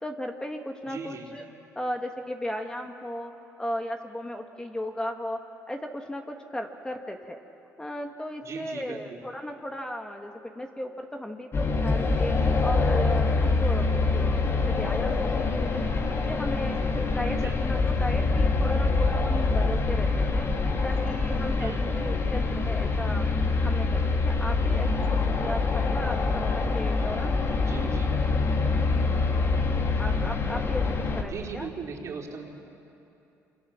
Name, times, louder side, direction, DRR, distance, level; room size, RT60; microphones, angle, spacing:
voice 1, 0.0-1.5 1.8-3.3 3.6-5.4 5.7-7.4 7.8-12.3 12.6-15.9 16.1-20.5 20.8-23.3 23.6-25.0 25.4-27.3 30.0-30.8 31.2-31.7, left 1 dB, 10° left, 4 dB, 1.9 m, -35 dB
voice 2, 0.9-1.3 8.4-9.2 17.2-17.6 21.6-21.9 27.7-28.1 31.3-32.5, right 5 dB, 50° right, 0 dB, 4.0 m, -38 dB
sound 1, 11.5-31.2, left 3 dB, 40° left, 2.4 m, -25 dB
27.5 x 25.0 x 7.3 m, 2.8 s
supercardioid pair, 80°, 6 cm